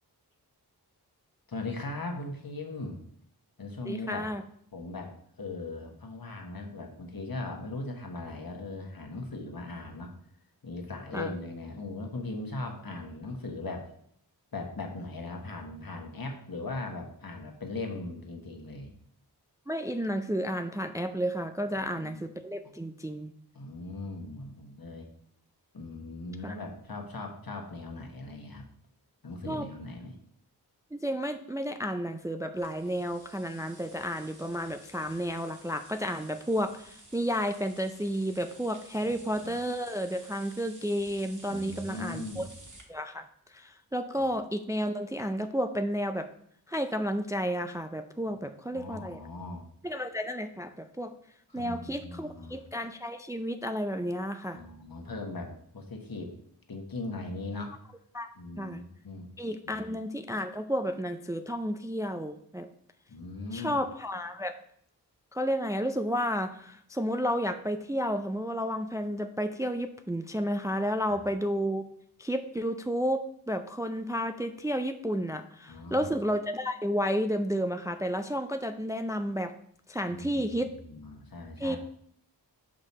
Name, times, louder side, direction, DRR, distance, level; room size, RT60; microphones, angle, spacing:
voice 1, 1.5-3.0 3.6-4.3 4.7-5.1 5.4-10.1 10.6-13.9 14.5-18.9 21.7-22.2 23.5-25.1 25.7-28.7 29.2-30.2 39.0-39.2 41.5-42.5 44.2-44.3 48.7-49.6 51.5-52.6 54.5-56.3 56.7-57.8 58.3-59.3 59.6-59.9 63.1-63.8 71.1-71.2 75.7-76.1 80.1-81.8, left 2 dB, 60° left, 2 dB, 1.4 m, -39 dB
voice 2, 3.8-4.4 11.1-11.4 19.7-23.3 26.4-26.5 29.5-29.7 30.9-42.5 42.9-46.3 46.7-49.2 49.8-51.1 51.5-54.6 58.1-58.3 58.6-58.8 59.4-62.7 63.5-64.6 65.3-71.8 72.2-79.5 79.9-80.7 81.6-81.8, equal, 10° right, 8 dB, 0.4 m, -32 dB
sound 1, 32.6-42.8, right 2 dB, 50° right, 1.6 m, -53 dB
5.6 x 5.1 x 4.2 m, 0.67 s
wide cardioid pair, 50°, 40 cm